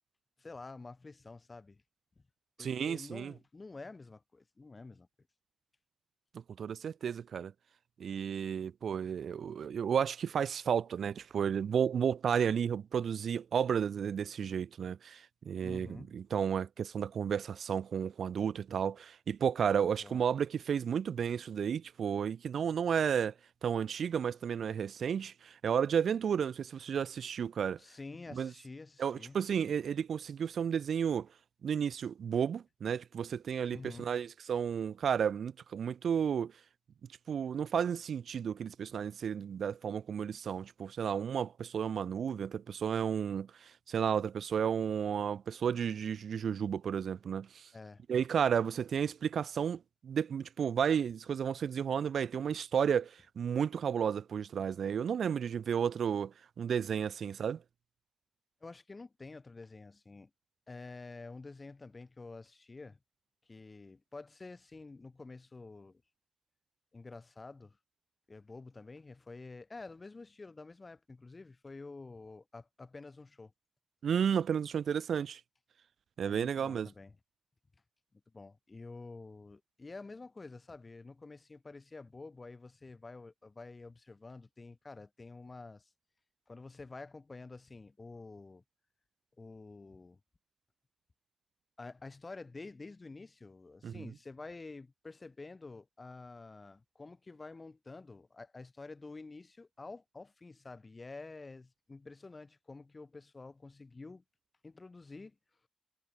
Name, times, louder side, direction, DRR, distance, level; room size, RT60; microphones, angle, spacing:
voice 1, 0.4-1.8 2.6-5.1 15.6-16.1 20.0-20.2 27.8-29.4 33.7-34.1 47.7-48.0 58.6-60.3 60.7-63.0 63.5-66.0 66.9-67.8 68.3-73.5 76.3-77.2 78.3-85.9 86.5-88.6 89.4-90.2 91.8-104.2 104.6-105.4, left 3 dB, 30° left, 3.7 m, -49 dB
voice 2, 2.6-3.3 6.3-7.5 8.0-23.3 23.6-27.8 28.3-28.5 29.0-31.3 31.6-36.5 37.3-47.7 48.1-57.6 74.0-75.4 76.2-76.9 93.8-94.0, right 7 dB, 80° right, 0.4 m, -32 dB
wide cardioid pair, 110°, 0 cm